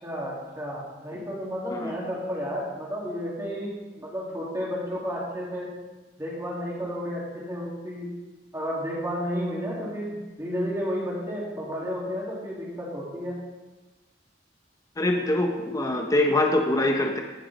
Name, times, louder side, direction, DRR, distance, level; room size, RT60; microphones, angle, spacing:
voice 1, 0.0-5.7 6.2-8.1 8.5-13.4, equal, 20° right, -5 dB, 2.5 m, -32 dB
voice 2, 15.0-17.2, left 1 dB, 20° left, 3 dB, 0.9 m, -24 dB
15.0 x 7.1 x 4.2 m, 1.2 s
head